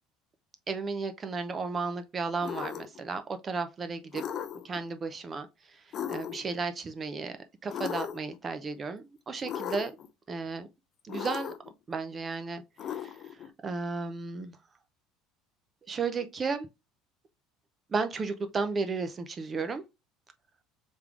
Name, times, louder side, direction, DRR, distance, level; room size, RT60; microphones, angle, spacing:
voice 1, 0.7-4.2 4.6-5.5 6.1-7.4 7.6-9.9 10.3-10.7 11.1-11.5 11.9-12.6 12.9-13.1 13.6-14.6 15.9-16.7 17.9-19.8, right 4 dB, 20° right, 0.5 m, -33 dB
sound 1, 2.4-3.0 4.1-4.8 5.9-6.6 7.7-8.4 9.4-10.1 11.1-11.7 12.8-13.5, left 9 dB, 35° left, 0.4 m, -37 dB
3.4 x 3.2 x 3.6 m
cardioid pair, 160°, 0 cm